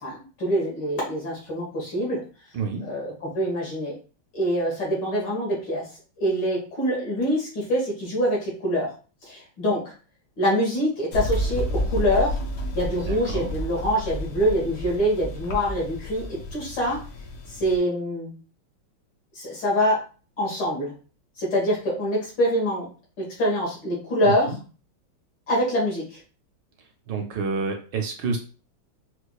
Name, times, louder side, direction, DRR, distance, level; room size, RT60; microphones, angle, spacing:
voice 1, 0.0-2.2 2.8-3.9 4.3-5.8 6.2-8.9 9.2-9.9 10.4-12.4 12.7-17.0 17.6-18.3 19.4-20.0 20.4-20.9 21.4-22.9 23.2-24.5 25.5-26.2, equal, 60° left, -4 dB, 1.9 m, -25 dB
sound 1, 11.1-17.8, equal, 85° left, 1.6 m, -31 dB
voice 2, 13.1-13.5 24.2-24.6 27.1-28.4, right 4 dB, 75° right, 3 dB, 1.1 m, -28 dB
4.6 x 2.4 x 2.3 m, 0.37 s
omnidirectional pair, 2.2 m